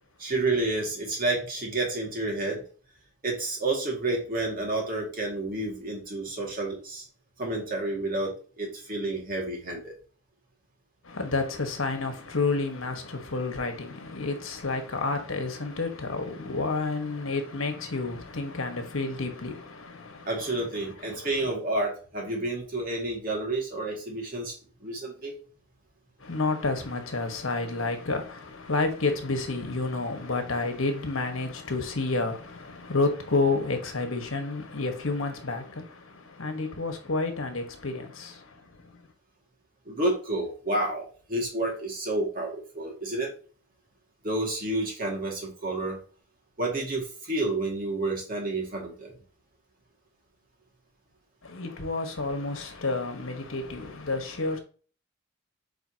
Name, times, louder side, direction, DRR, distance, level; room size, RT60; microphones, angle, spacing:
voice 1, 0.2-2.6 3.2-7.0 7.4-9.9 20.3-24.5 24.8-25.3 39.9-43.3 44.2-46.0 46.6-49.1, right 2 dB, 40° right, 2.0 m, -30 dB
voice 2, 11.0-21.5 26.2-39.1 51.4-54.6, left 3 dB, 75° left, 1.3 m, -30 dB
8.0 x 4.1 x 2.8 m
head